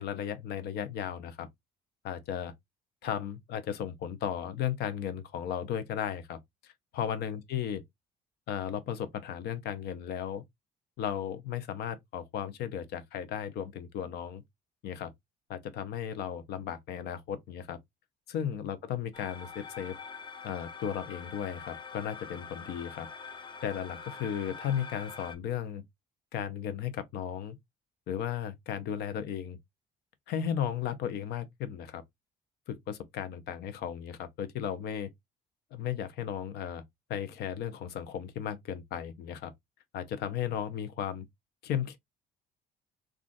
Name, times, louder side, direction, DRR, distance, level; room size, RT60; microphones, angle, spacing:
voice 1, 0.0-1.5 2.0-2.5 3.0-6.4 6.6-7.8 8.5-10.4 11.0-14.4 14.8-15.1 15.5-17.8 18.3-20.0 20.4-23.1 23.6-25.8 26.3-27.6 28.1-29.6 30.3-32.0 32.7-35.1 35.7-36.8 37.1-39.5 39.9-41.3 41.6-42.0, left 9 dB, 75° left, 0.7 m, -35 dB
sound 1, 19.1-25.4, left 5 dB, 30° left, 0.6 m, -45 dB
3.8 x 2.4 x 2.5 m
cardioid pair, 110°, 17 cm